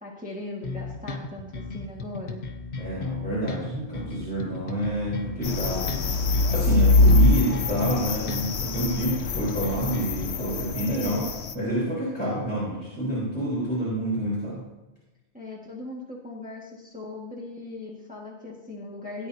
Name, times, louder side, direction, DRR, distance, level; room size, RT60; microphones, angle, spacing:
voice 1, 0.0-2.4 10.9-11.3 15.3-19.3, left 2 dB, 5° right, -4 dB, 1.7 m, -38 dB
sound 1, 0.6-10.2, left 4 dB, 55° left, 1.1 m, -35 dB
voice 2, 2.8-5.9 6.5-11.3 11.5-14.6, right 1 dB, 10° left, -9 dB, 4.2 m, -28 dB
sound 2, 5.4-11.5, left 3 dB, 80° left, 1.0 m, -23 dB
17.5 x 9.4 x 2.8 m, 1.1 s
omnidirectional pair, 1.1 m